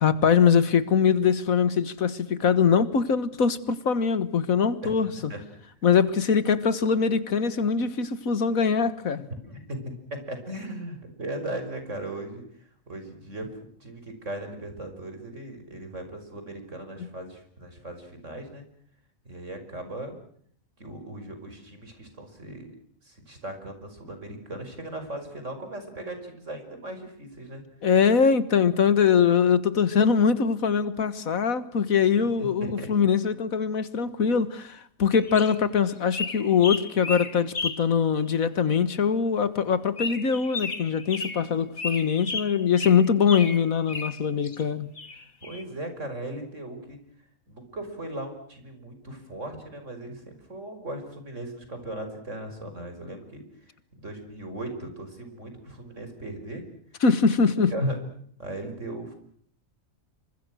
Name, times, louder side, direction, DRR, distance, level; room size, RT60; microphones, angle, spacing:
voice 1, 0.0-5.1 5.8-9.3 17.0-17.1 27.8-44.9 57.0-57.7, left 6 dB, 80° left, 1.9 m, -22 dB
voice 2, 4.8-5.4 9.4-9.8 10.1-18.6 19.3-20.2 20.8-22.7 23.0-27.6 32.4-32.9 45.4-47.0 47.5-56.6 57.6-58.0 58.4-59.2, right 1 dB, 60° right, 6.1 m, -37 dB
sound 1, 35.1-35.6 36.1-37.9 38.3-38.4 40.0-41.5 41.8-44.6 45.0-45.6, left 4 dB, 35° left, 2.0 m, -34 dB
28.0 x 25.0 x 6.4 m
omnidirectional pair, 1.4 m